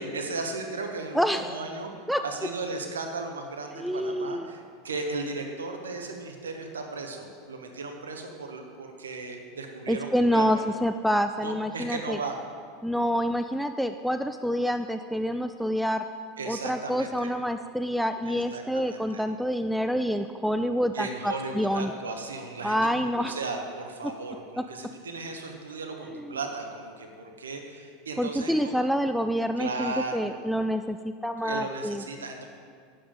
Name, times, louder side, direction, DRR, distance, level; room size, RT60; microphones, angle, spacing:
voice 1, 0.0-10.5 11.4-12.4 16.4-17.3 18.3-19.2 20.9-28.7 29.6-30.4 31.4-32.4, right 3 dB, 80° right, 3 dB, 1.0 m, -36 dB
voice 2, 1.1-1.6 2.1-2.2 3.7-4.5 9.9-12.2 12.8-16.0 16.5-21.9 22.6-23.4 24.6-24.7 26.1-26.3 28.2-32.0, equal, ahead, 8 dB, 0.3 m, -27 dB
8.6 x 7.8 x 5.1 m, 2.1 s
figure-of-eight pair, 80°, 0 cm